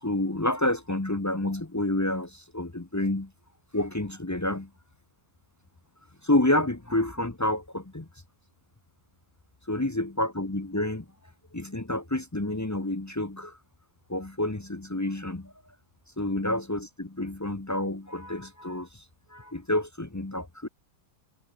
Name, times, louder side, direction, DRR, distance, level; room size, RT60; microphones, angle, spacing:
voice 1, 0.0-3.3 3.7-4.7 6.2-8.1 9.7-11.0 11.5-13.5 14.1-15.5 16.2-18.9 19.3-20.7, left 1 dB, 20° left, 0.4 m, -29 dB
omnidirectional pair, 2.3 m